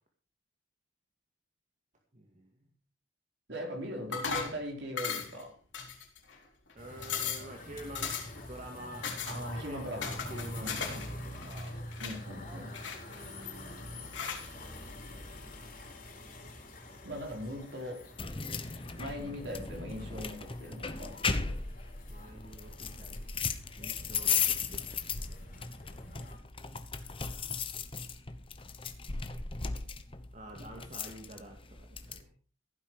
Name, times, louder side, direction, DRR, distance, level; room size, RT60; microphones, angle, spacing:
voice 1, 2.1-2.5 6.7-8.1 8.5-9.1 9.5-11.8 13.0-14.8 15.1-15.5 22.1-25.3 27.0-27.8 30.3-32.3, right 1 dB, 40° right, 1 dB, 2.1 m, -49 dB
voice 2, 3.5-5.6 9.3-10.2 10.6-11.0 12.0-12.7 17.0-18.1 19.0-21.2, equal, 60° right, 2 dB, 4.6 m, -40 dB
sound 1, 4.1-4.6 5.0-5.4 5.7-6.3 6.7-6.8 7.0-7.5 7.9-8.4 9.0-9.4 10.0-11.1 11.3-12.2 12.7-13.5 14.1-14.5, left 6 dB, 70° left, 3.9 m, -37 dB
sound 2, 6.8-26.4, left 1 dB, 45° left, 4.8 m, -46 dB
sound 3, 18.2-32.2, left 5 dB, 25° left, 1.1 m, -36 dB
16.0 x 9.4 x 4.8 m, 0.38 s
head